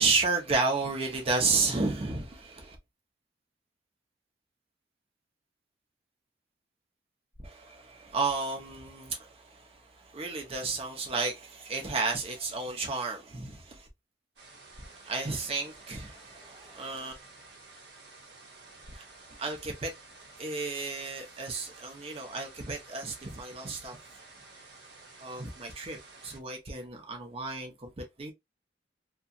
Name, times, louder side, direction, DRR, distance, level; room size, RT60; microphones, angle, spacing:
voice 1, 0.0-2.8 7.4-13.9 14.8-17.1 18.9-19.1 19.4-19.9 20.4-24.0 25.2-28.3, right 3 dB, 35° right, 0.7 m, -32 dB
sound 1, 14.4-26.4, right 3 dB, 70° right, 1.0 m, -52 dB
2.7 x 2.3 x 2.5 m
head